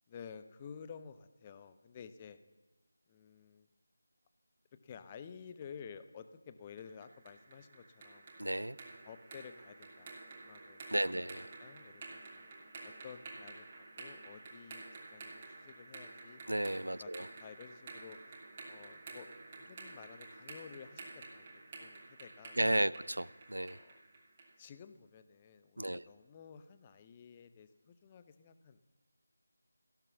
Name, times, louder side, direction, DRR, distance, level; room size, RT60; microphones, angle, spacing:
voice 1, 0.1-2.4 3.1-3.7 4.8-8.4 9.0-11.2 11.6-14.8 15.1-16.4 16.9-17.1 17.4-18.2 18.7-19.3 19.6-22.9 23.7-24.0 24.6-28.8, left 7 dB, 20° left, 11 dB, 0.7 m, -53 dB
sound 1, 6.8-24.6, right 3 dB, 25° right, 2.8 m, -51 dB
voice 2, 8.4-8.8 10.9-11.5 16.5-17.3 22.6-23.8 25.8-26.0, right 1 dB, 85° right, 19 dB, 0.6 m, -33 dB
15.5 x 12.0 x 7.0 m, 1.2 s
figure-of-eight pair, 165°, 0 cm